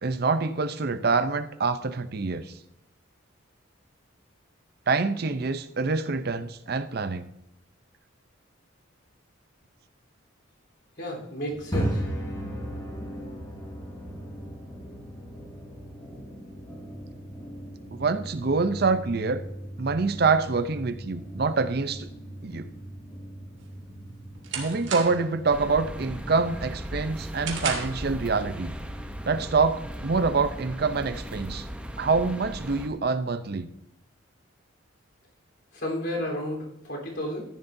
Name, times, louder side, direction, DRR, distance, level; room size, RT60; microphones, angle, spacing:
voice 1, 0.0-2.5 4.9-7.3 17.9-19.4 19.8-22.1 22.4-22.7 24.6-28.7 29.3-31.7 32.0-33.7, right 4 dB, 50° right, 12 dB, 0.5 m, -26 dB
voice 2, 11.0-12.0 35.7-37.4, equal, 55° left, -1 dB, 3.6 m, -32 dB
sound 1, 11.5-31.4, right 1 dB, 20° left, 3.7 m, -38 dB
sound 2, 23.6-25.4 25.8-26.2 26.6-28.1, right 5 dB, 65° right, 2.2 m, -34 dB
sound 3, 25.5-32.9, equal, 5° right, 0.7 m, -37 dB
14.0 x 10.5 x 2.7 m, 0.81 s
head